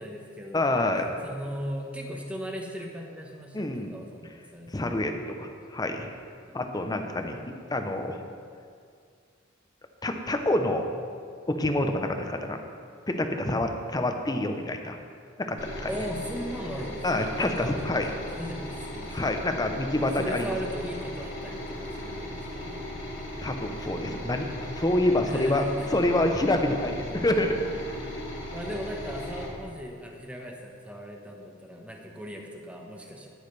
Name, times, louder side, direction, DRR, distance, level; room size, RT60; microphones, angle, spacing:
voice 1, 0.0-0.8 1.2-5.1 6.5-7.3 15.9-17.8 18.1-19.3 20.0-22.9 25.2-25.9 28.0-28.2 28.5-33.3, equal, 5° right, 1 dB, 1.0 m, -38 dB
voice 2, 0.5-1.1 3.5-4.0 4.7-6.1 6.5-7.4 7.7-8.2 10.0-10.9 11.5-12.6 13.1-15.0 15.4-15.9 17.0-18.1 19.1-20.6 23.4-25.6 25.9-27.6, left 1 dB, 20° left, 5 dB, 0.7 m, -27 dB
sound 1, 15.6-29.5, left 1 dB, 70° left, 2.6 m, -37 dB
sound 2, 21.8-29.8, right 1 dB, 60° right, 1.0 m, -50 dB
18.0 x 6.3 x 3.3 m, 2.3 s
head